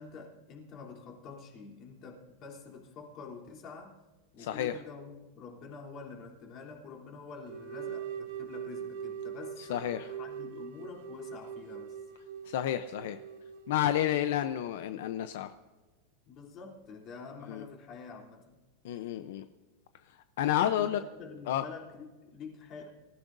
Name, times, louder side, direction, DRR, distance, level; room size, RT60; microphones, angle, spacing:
voice 1, 0.0-3.9 4.3-12.0 16.3-18.6 20.4-22.9, left 5 dB, 35° left, 0 dB, 3.3 m, -47 dB
voice 2, 4.4-4.7 9.7-10.1 12.5-13.2 13.7-15.5 17.5-17.6 18.8-19.4 20.4-21.0 21.5-21.7, left 11 dB, 70° left, 10 dB, 0.6 m, -30 dB
sound 1, 7.5-14.2, right 8 dB, 70° right, 2.2 m, -42 dB
24.5 x 15.0 x 2.6 m, 1.3 s
supercardioid pair, 155°, 0 cm